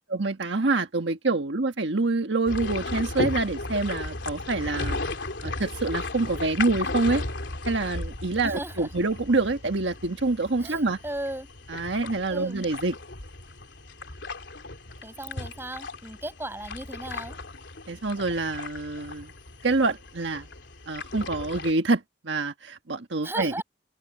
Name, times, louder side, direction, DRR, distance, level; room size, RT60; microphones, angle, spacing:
voice 1, 0.0-5.0 5.4-7.2 7.7-11.0 11.7-12.9 17.9-19.3 19.6-20.5 20.9-23.6, right 3 dB, 80° right, 1.4 m, -26 dB
sound 1, 2.5-21.7, left 2 dB, 80° left, 3.2 m, -36 dB
voice 2, 8.4-8.9 10.6-11.5 12.3-12.6 15.0-17.4 23.2-23.6, right 1 dB, 15° right, 6.5 m, -36 dB
head